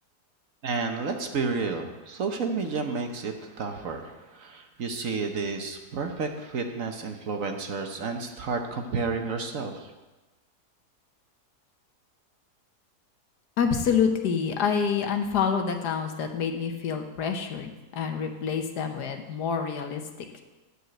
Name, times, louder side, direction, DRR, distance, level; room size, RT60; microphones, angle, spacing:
voice 1, 0.6-9.9, right 4 dB, 60° right, 5 dB, 1.2 m, -31 dB
voice 2, 13.6-20.0, left 6 dB, 75° left, 5 dB, 1.5 m, -27 dB
9.8 x 5.5 x 7.7 m, 1.1 s
omnidirectional pair, 1.8 m